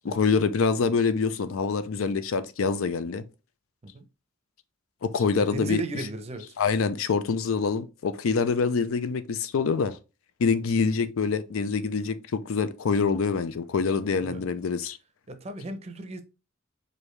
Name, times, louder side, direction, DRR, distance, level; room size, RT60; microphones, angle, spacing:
voice 1, 0.0-3.2 5.0-5.8 6.6-10.0 10.4-15.0, left 5 dB, 85° left, 0.5 m, -25 dB
voice 2, 5.4-6.5 14.2-14.4 15.3-16.2, right 1 dB, 30° right, 0.5 m, -36 dB
4.7 x 2.6 x 3.2 m
head